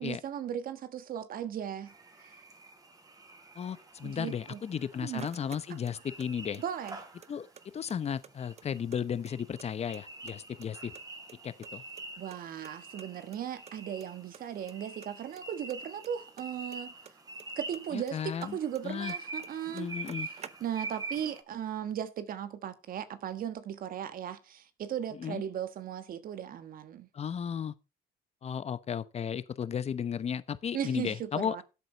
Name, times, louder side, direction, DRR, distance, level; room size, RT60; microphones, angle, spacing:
voice 1, 0.0-1.9 2.2-2.4 4.0-4.6 5.0-5.3 5.7-5.8 6.6-7.0 12.2-16.9 17.6-19.9 20.6-27.1 30.7-31.6, right 9 dB, 55° right, 1.4 m, -37 dB
sound 1, 1.9-21.4, right 3 dB, 20° right, 2.7 m, -46 dB
voice 2, 3.6-6.6 7.3-7.5 7.7-10.9 11.4-11.8 17.9-18.6 18.8-19.1 19.7-20.3 25.2-25.4 27.1-27.7 28.4-31.6, left 8 dB, 40° left, 1.0 m, -34 dB
sound 2, 4.5-6.3 6.5-7.6 7.9-8.0 8.2-9.7 9.9-10.7 10.9-12.4 12.6-12.7 13.0-13.1 13.3-13.4 13.7-14.1 14.3-14.7 15.0-17.5 17.7-19.2 19.4-19.5 19.7-21.0, right 8 dB, 40° right, 0.8 m, -51 dB
13.0 x 8.0 x 4.2 m
cardioid pair, 110°, 17 cm